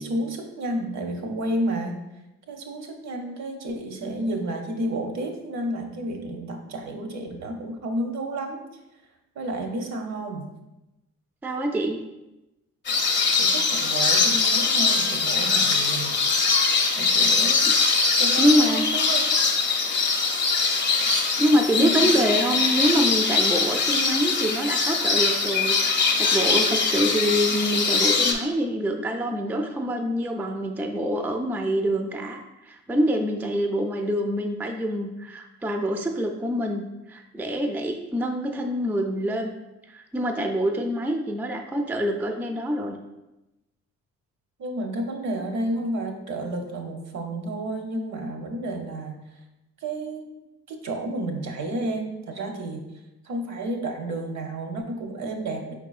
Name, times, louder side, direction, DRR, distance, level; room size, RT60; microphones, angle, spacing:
voice 1, 0.0-2.0 2.5-8.7 9.3-10.5 13.3-16.1 16.9-17.7 18.2-19.3 21.0-21.1 21.7-22.2 44.6-49.4 49.8-50.3 50.7-52.8 53.2-55.7, right 1 dB, 65° right, 4 dB, 0.7 m, -31 dB
voice 2, 11.4-12.0 18.4-18.9 21.4-36.8 37.1-39.5 39.9-43.0, equal, 5° right, 3 dB, 0.3 m, -25 dB
sound 1, 12.9-28.3, left 4 dB, 40° left, 0.6 m, -22 dB
4.7 x 3.7 x 2.4 m, 0.97 s
cardioid pair, 90°, 30 cm